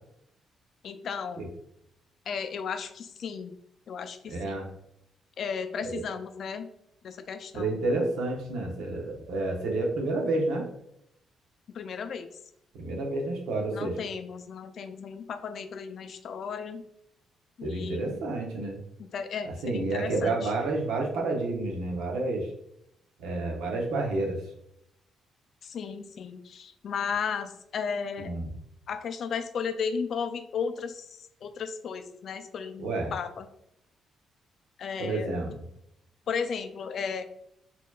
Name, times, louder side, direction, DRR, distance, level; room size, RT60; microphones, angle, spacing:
voice 1, 0.8-1.4 2.3-3.5 3.9-4.7 5.4-6.7 7.0-7.8 11.7-12.3 13.7-16.8 17.6-18.2 19.0-20.5 25.6-28.3 28.9-33.5 34.8-35.4 36.3-37.3, left 6 dB, 60° left, 8 dB, 0.4 m, -35 dB
voice 2, 4.3-4.7 5.9-6.0 7.5-10.7 12.7-14.0 17.6-18.8 19.6-22.5 23.2-24.4 28.2-28.5 32.8-33.1 35.0-35.5, right 2 dB, 90° right, 1 dB, 0.8 m, -29 dB
4.3 x 2.8 x 2.3 m, 0.77 s
cardioid pair, 90°, 0 cm